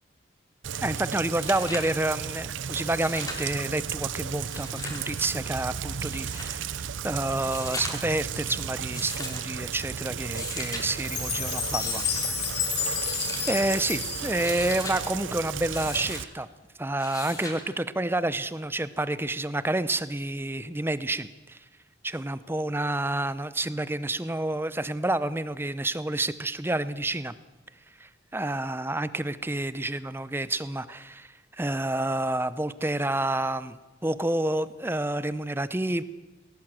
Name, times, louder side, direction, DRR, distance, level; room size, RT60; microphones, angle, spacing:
Rain, 0.6-16.2, right 7 dB, 75° right, 0.6 m, -34 dB
voice 1, 0.8-12.0 13.5-16.5 16.8-21.6 22.0-27.3 28.0-36.0, right 1 dB, 10° right, 15 dB, 0.7 m, -29 dB
sound 1, 0.9-1.0 1.3-2.0 2.9-3.5 4.4-5.1 6.0-6.5 7.4-8.2 8.9-9.4 10.2-10.8 11.6-12.3 13.0-13.6 14.2-15.0 15.7-16.2 17.0-17.6 19.0-19.1, left 2 dB, 20° left, 3.4 m, -38 dB
Chime, 11.0-15.2, left 8 dB, 55° left, 3.6 m, -31 dB
19.0 x 18.0 x 7.6 m, 1.1 s
head